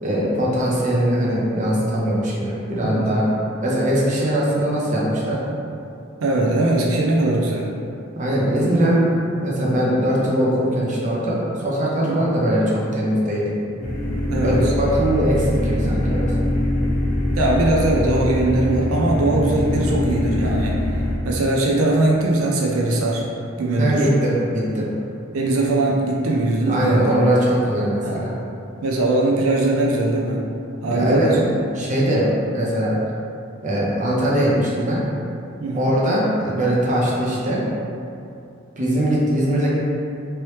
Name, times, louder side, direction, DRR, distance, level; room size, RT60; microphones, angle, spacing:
voice 1, 0.0-3.3 3.6-5.4 8.2-13.5 14.4-16.3 23.8-24.9 26.7-28.3 30.9-32.9 33.6-35.0 35.7-37.6 38.8-39.7, right 1 dB, 35° right, -5 dB, 0.6 m, -21 dB
voice 2, 6.2-7.7 12.1-12.3 14.3-14.7 17.4-20.8 21.2-23.2 23.6-24.0 25.3-27.1 28.0-28.2 28.8-30.4 30.8-31.3 35.6-35.9, right 2 dB, 85° right, -2 dB, 0.4 m, -20 dB
sound 1, 13.8-21.1, left 1 dB, 35° left, 0.8 m, -22 dB
3.0 x 3.0 x 3.1 m, 2.6 s
head